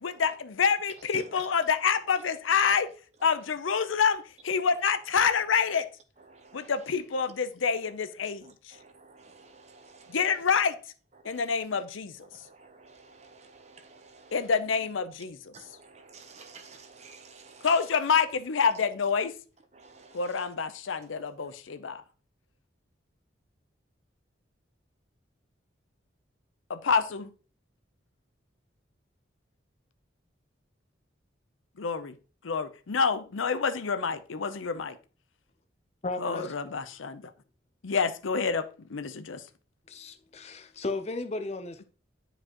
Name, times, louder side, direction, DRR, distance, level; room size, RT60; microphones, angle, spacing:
voice 1, 0.0-2.9 3.2-5.8 6.5-8.8 10.1-10.8 11.2-12.1 14.3-15.5 17.6-19.3 20.1-22.0 26.7-27.3 31.8-32.1 32.4-35.0 36.2-37.2 37.8-39.4, left 6 dB, 85° left, 0.6 m, -27 dB
voice 2, 6.3-6.7 7.8-7.9 8.2-10.4 11.2-11.6 12.3-14.5 15.5-17.8 19.7-20.4 21.1-21.2, right 4 dB, 35° right, 0.8 m, -52 dB
voice 3, 36.0-36.5 39.9-41.8, left 2 dB, 35° left, 0.6 m, -35 dB
9.7 x 5.0 x 2.9 m
head